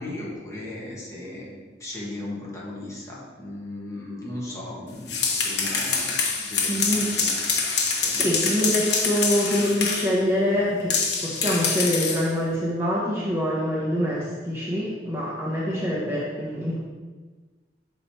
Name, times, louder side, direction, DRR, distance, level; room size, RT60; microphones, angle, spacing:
voice 1, 0.0-5.1 5.4-7.4 7.8-8.2, left 1 dB, 15° left, -5 dB, 1.7 m, -37 dB
sound 1, 4.9-10.1 10.9-12.3, left 4 dB, 70° left, 1.2 m, -25 dB
voice 2, 6.7-7.1 8.2-10.9 11.2-16.8, equal, 15° right, -6 dB, 1.1 m, -25 dB
6.6 x 5.1 x 4.4 m, 1.4 s
head